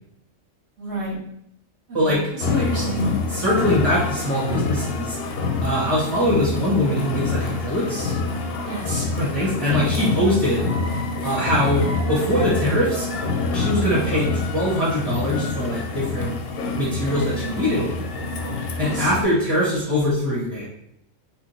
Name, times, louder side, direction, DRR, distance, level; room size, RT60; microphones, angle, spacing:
voice 1, 0.8-1.2 1.9-3.1 8.6-9.1 18.6-19.1, right 1 dB, 55° right, -5 dB, 1.8 m, -29 dB
sound 1, 2.4-19.2, left 3 dB, 60° left, 0.7 m, -26 dB
voice 2, 3.3-5.2 5.6-8.2 9.1-10.7 11.2-13.1 13.5-16.3 16.8-17.9 18.8-20.7, equal, 20° right, -7 dB, 1.4 m, -22 dB
4.2 x 2.6 x 4.2 m, 0.75 s
omnidirectional pair, 1.3 m